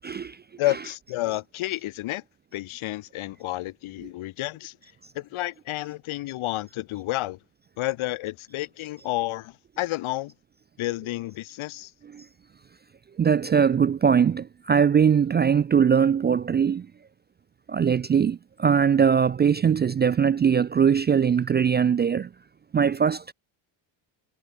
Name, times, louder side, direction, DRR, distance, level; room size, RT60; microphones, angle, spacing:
voice 1, 0.0-0.4 12.1-12.3 13.2-16.9 17.7-22.3 22.7-23.3, right 7 dB, 25° right, 0.4 m, -21 dB
voice 2, 0.6-2.2 2.5-4.8 5.1-7.4 7.8-10.3 10.8-11.9, left 17 dB, 75° left, 4.8 m, -30 dB
cardioid pair, 100°, 49 cm